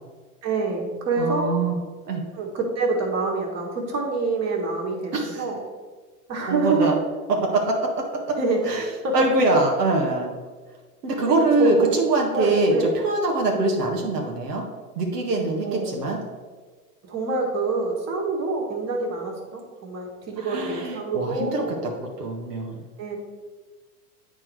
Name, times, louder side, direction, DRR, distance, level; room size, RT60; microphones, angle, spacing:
voice 1, 0.4-1.5 2.3-5.6 6.3-6.9 8.4-8.6 9.0-9.2 11.2-12.0 12.2-13.0 15.6-16.3 17.0-21.8 23.0-23.2, right 3 dB, 35° right, 0 dB, 2.0 m, -26 dB
voice 2, 1.2-1.8 2.0-2.2 5.1-5.4 6.4-6.9 7.5-7.7 8.1-8.4 8.7-8.8 9.1-10.3 11.0-14.6 15.0-16.2 20.4-22.8, right 2 dB, 80° right, 0 dB, 1.6 m, -23 dB
8.7 x 4.4 x 4.7 m, 1.4 s
hypercardioid pair, 105°, 46 cm